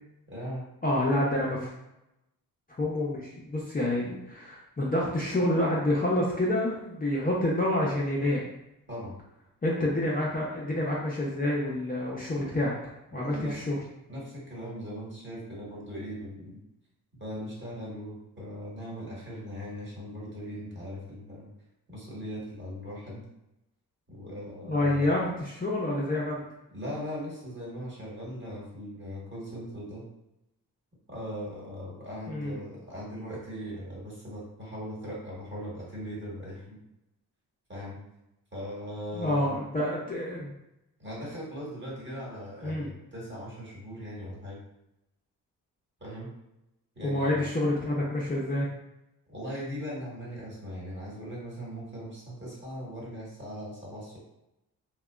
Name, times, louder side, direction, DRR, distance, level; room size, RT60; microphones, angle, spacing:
voice 1, 0.3-0.6 8.9-9.2 13.1-13.6 14.1-16.6 17.1-21.5 21.9-23.2 24.1-25.1 26.7-30.0 31.1-36.8 37.7-38.0 38.5-39.6 41.0-44.6 46.0-46.3 46.9-47.5 49.3-54.1, equal, 30° right, -5 dB, 1.4 m, -39 dB
voice 2, 0.8-1.7 2.8-8.4 9.6-12.7 13.1-13.8 24.6-26.4 32.3-32.6 39.1-40.5 42.6-42.9 47.0-48.7, left 1 dB, 20° left, -5 dB, 0.6 m, -28 dB
2.8 x 2.2 x 2.3 m, 0.89 s
supercardioid pair, 60°, 39 cm